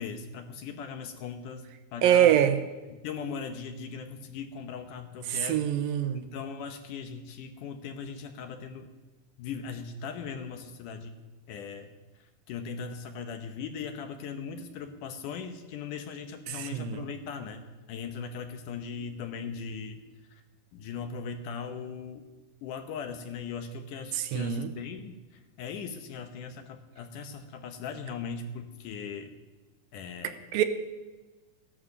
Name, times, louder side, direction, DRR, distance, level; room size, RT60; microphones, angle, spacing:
voice 1, 0.0-1.7 1.9-2.4 2.9-5.6 6.1-8.9 9.4-11.9 12.5-20.0 20.3-20.4 20.7-22.2 22.6-25.2 25.6-29.3 29.9-30.4, left 6 dB, 70° left, 2.3 m, -39 dB
voice 2, 2.0-2.6 5.3-6.2 16.5-17.1 24.1-24.7 30.5-30.6, right 10 dB, 80° right, 2.5 m, -24 dB
15.5 x 11.5 x 6.7 m
omnidirectional pair, 4.2 m